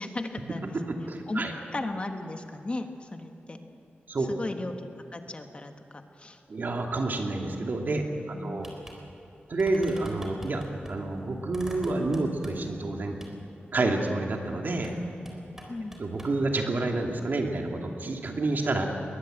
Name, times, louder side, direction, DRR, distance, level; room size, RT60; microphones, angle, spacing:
voice 1, 0.0-0.7 1.3-1.5 1.7-3.6 4.3-4.8 5.1-6.4 8.3-8.7 15.7-16.0, left 2 dB, 30° left, 6 dB, 1.4 m, -36 dB
voice 2, 0.6-1.5 4.1-4.3 6.5-8.0 8.4-8.7 9.5-10.6 10.9-13.2 13.7-14.9 16.0-18.9, right 2 dB, 55° right, 2 dB, 2.6 m, -29 dB
sound 1, 8.6-9.0 9.2-9.3 9.6-10.9 11.5-12.8 13.2-13.4 14.8-15.0 15.3-16.4, right 1 dB, 10° right, 3.9 m, -45 dB
21.5 x 19.5 x 8.0 m, 2.8 s
wide cardioid pair, 120°, 4 cm